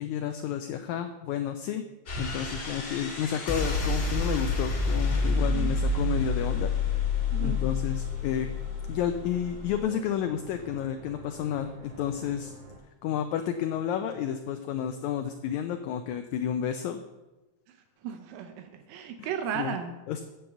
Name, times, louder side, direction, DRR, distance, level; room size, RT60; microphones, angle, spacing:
voice 1, 0.0-1.8 2.2-6.7 7.4-8.5 8.9-12.5 13.0-17.0 19.2-19.3 19.6-19.8 20.1-20.2, left 9 dB, 80° left, 7 dB, 1.7 m, -31 dB
sound 1, 2.1-9.8, left 3 dB, 35° left, 2.1 m, -29 dB
voice 2, 5.3-5.7 7.3-7.6 18.0-19.9, right 8 dB, 85° right, 7 dB, 2.3 m, -35 dB
sound 2, 6.5-12.8, right 2 dB, 55° right, 2.7 m, -49 dB
7.4 x 7.0 x 7.8 m, 1.1 s
omnidirectional pair, 3.8 m